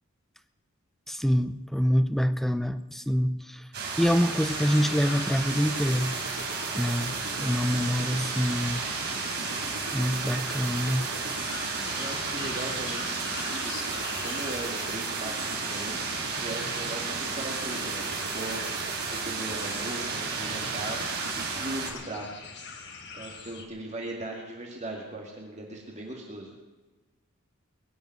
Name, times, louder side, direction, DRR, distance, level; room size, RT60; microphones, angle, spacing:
voice 1, 1.1-3.7 4.0-6.4 6.7-7.1 7.4-8.8 9.9-11.1, equal, ahead, 10 dB, 0.6 m, -26 dB
sound 1, 3.7-21.9, right 4 dB, 50° right, 3.9 m, -33 dB
sound 2, 4.4-23.7, left 4 dB, 55° left, 1.9 m, -44 dB
sound 3, 5.5-21.7, right 4 dB, 75° right, 3.4 m, -39 dB
voice 2, 7.7-8.3 11.7-18.6 19.2-22.3 22.7-22.8 23.1-26.5, right 2 dB, 30° right, 0 dB, 2.0 m, -39 dB
21.0 x 7.3 x 9.4 m, 1.2 s
head